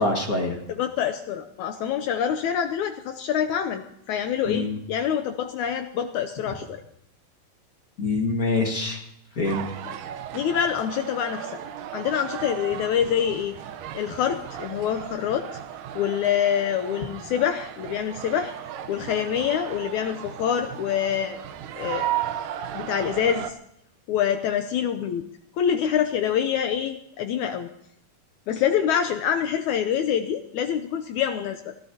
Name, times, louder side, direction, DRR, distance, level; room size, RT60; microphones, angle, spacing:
voice 1, 0.0-0.6 4.4-4.8 8.0-9.0 9.3-9.7, left 3 dB, 40° left, 1 dB, 1.3 m, -25 dB
voice 2, 0.8-6.8 10.3-11.6 11.9-13.6 13.9-15.5 16.0-18.5 18.9-21.4 21.8-22.1 22.7-23.6 24.1-25.3 25.6-27.7 28.5-31.8, left 9 dB, 80° left, 7 dB, 1.7 m, -26 dB
sound 1, 9.4-23.5, right 11 dB, 75° right, 2.2 m, -35 dB
24.5 x 15.5 x 2.8 m, 0.76 s
omnidirectional pair, 4.1 m